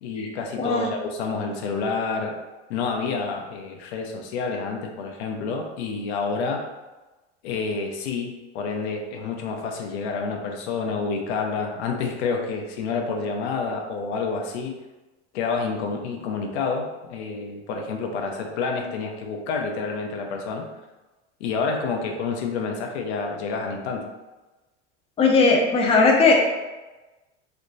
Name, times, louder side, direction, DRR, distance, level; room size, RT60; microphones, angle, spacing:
voice 1, 0.0-2.4 2.7-6.6 7.4-14.7 15.3-20.7 21.4-24.1, left 4 dB, 70° left, 2 dB, 0.7 m, -28 dB
voice 2, 0.6-0.9 25.2-26.3, left 3 dB, 20° left, -1 dB, 0.5 m, -18 dB
3.3 x 2.9 x 2.6 m, 1.1 s
hypercardioid pair, 110°, 34 cm